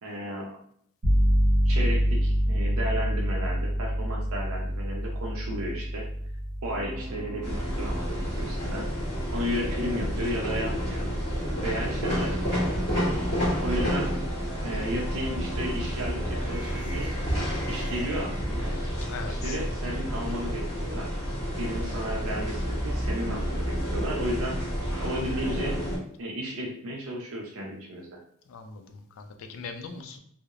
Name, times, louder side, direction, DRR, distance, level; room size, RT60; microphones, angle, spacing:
voice 1, 0.0-0.6 1.6-6.0 6.6-8.9 9.3-11.1 11.6-14.1 14.6-17.1 17.7-18.7 19.3-21.1 21.6-24.6 25.0-25.8 26.2-28.2, equal, 65° right, -1 dB, 0.5 m, -34 dB
sound 1, 1.0-11.6, equal, 30° right, 0.8 m, -28 dB
sound 2, 6.7-20.7, equal, 5° right, 0.5 m, -44 dB
sound 3, 7.4-26.0, equal, 30° left, 1.3 m, -30 dB
voice 2, 19.1-19.6 28.5-30.2, left 5 dB, 60° left, 6 dB, 0.4 m, -40 dB
2.8 x 2.0 x 2.3 m, 0.67 s
head